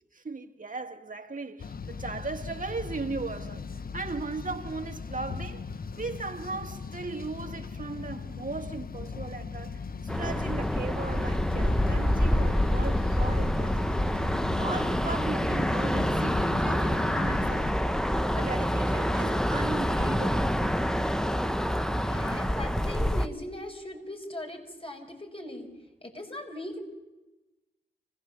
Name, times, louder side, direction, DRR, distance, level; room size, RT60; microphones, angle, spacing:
voice 1, 0.1-9.9 10.1-14.0 14.6-18.0 18.4-20.9, right 3 dB, 40° right, 2.0 m, -37 dB
sound 1, 1.6-17.7, left 5 dB, 45° left, 0.8 m, -38 dB
sound 2, 10.1-23.3, equal, 5° left, 1.0 m, -27 dB
voice 2, 22.0-25.7 26.0-26.8, left 1 dB, 30° left, 5.6 m, -39 dB
25.5 x 16.5 x 7.1 m
cardioid pair, 45°, 20 cm